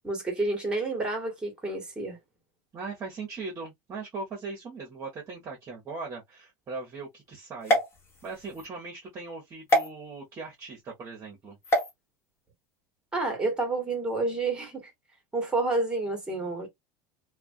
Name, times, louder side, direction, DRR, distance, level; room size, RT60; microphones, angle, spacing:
voice 1, 0.0-2.2 13.1-14.9 15.3-16.7, right 2 dB, 10° right, 1.2 m, -29 dB
voice 2, 2.7-7.8 8.2-11.6, right 4 dB, 25° right, 1.0 m, -39 dB
sound 1, 7.6-8.7 9.7-9.9 11.6-11.9, equal, 25° left, 1.1 m, -26 dB
2.4 x 2.2 x 2.4 m
supercardioid pair, 140°, 10 cm